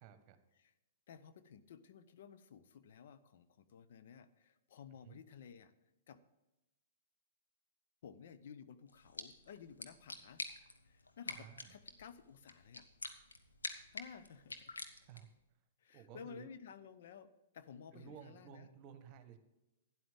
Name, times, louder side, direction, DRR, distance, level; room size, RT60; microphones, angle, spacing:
voice 1, 0.0-0.4 5.0-5.2 11.3-11.7 15.0-15.3 15.9-16.5 17.9-19.4, right 8 dB, 40° right, 10 dB, 1.3 m, -55 dB
voice 2, 1.1-5.7 6.1-6.2 8.0-10.4 10.9-12.9 13.9-14.7 15.8-18.7, left 7 dB, 60° left, 11 dB, 0.7 m, -55 dB
sound 1, 8.9-15.4, left 3 dB, 80° left, 1.2 m, -48 dB
12.5 x 9.9 x 3.6 m, 0.98 s
figure-of-eight pair, 110°, 0 cm